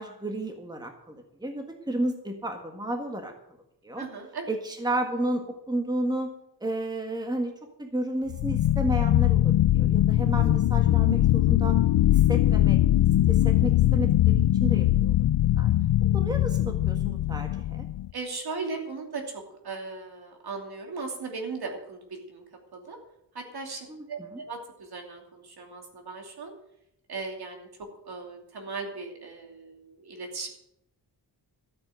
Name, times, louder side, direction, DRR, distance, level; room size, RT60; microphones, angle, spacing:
voice 1, 0.0-3.3 3.8-4.1 4.5-6.3 6.6-7.5 7.8-11.8 12.1-12.8 13.3-15.2 15.6-15.7 16.1-17.9 23.9-24.4, right 1 dB, 10° right, 4 dB, 1.7 m, -32 dB
voice 2, 4.0-4.5 16.0-16.1 18.1-22.4 22.7-23.0 23.3-26.5 27.1-27.7 28.0-30.5, right 4 dB, 60° right, 3 dB, 2.9 m, -37 dB
sound 1, 8.3-18.1, left 13 dB, 80° left, 0.6 m, -22 dB
13.0 x 8.6 x 7.7 m, 0.78 s
wide cardioid pair, 140°, 43 cm